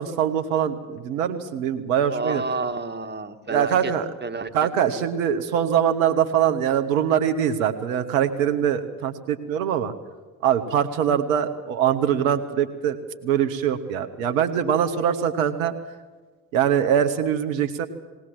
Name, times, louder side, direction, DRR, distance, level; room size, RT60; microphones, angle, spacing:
voice 1, 0.0-2.4 3.5-4.0 4.5-9.9 10.4-13.0 13.2-15.7 16.5-17.9, right 9 dB, 75° right, 9 dB, 1.3 m, -23 dB
voice 2, 2.1-3.9 4.2-4.7, right 3 dB, 25° right, 8 dB, 2.0 m, -30 dB
19.0 x 19.0 x 7.7 m, 1.3 s
figure-of-eight pair, 50°, 41 cm